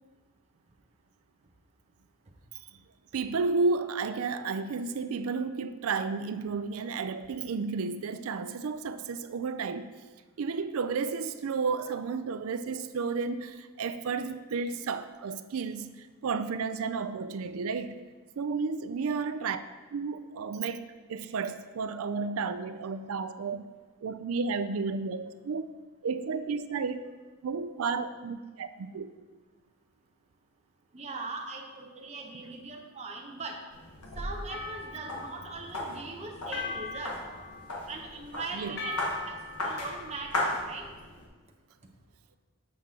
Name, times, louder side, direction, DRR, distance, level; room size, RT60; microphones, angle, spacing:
voice 1, 3.1-9.9 10.4-18.0 18.4-19.6 19.9-20.8 21.1-23.7 24.0-25.6 26.0-27.0 27.4-29.1 38.5-38.8, right 4 dB, 65° right, 11 dB, 0.4 m, -32 dB
voice 2, 30.9-33.6 34.2-37.2 37.9-40.9, right 3 dB, 30° right, 1 dB, 0.8 m, -40 dB
sound 1, 33.7-41.3, left 1 dB, 90° left, 1.2 m, -37 dB
sound 2, 34.5-35.8 36.5-38.0 38.8-40.3, left 4 dB, 50° left, 0.6 m, -40 dB
7.1 x 5.9 x 3.7 m, 1.3 s
head